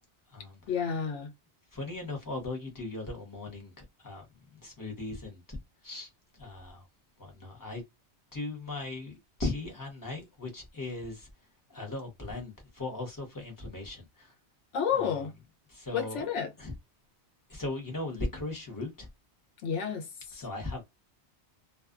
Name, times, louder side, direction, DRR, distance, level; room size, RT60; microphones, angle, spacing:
voice 1, 0.7-1.3 14.7-15.3 15.9-16.5 19.6-20.4, left 7 dB, 85° left, 1.1 m, -31 dB
voice 2, 1.7-4.2 4.6-5.4 5.8-6.1 6.4-6.8 7.2-7.8 8.3-9.1 9.4-11.3 11.7-14.3 15.7-16.2 16.6-16.7 17.5-19.1 20.4-20.8, left 2 dB, 20° left, 0.8 m, -38 dB
2.4 x 2.3 x 2.4 m
omnidirectional pair, 1.2 m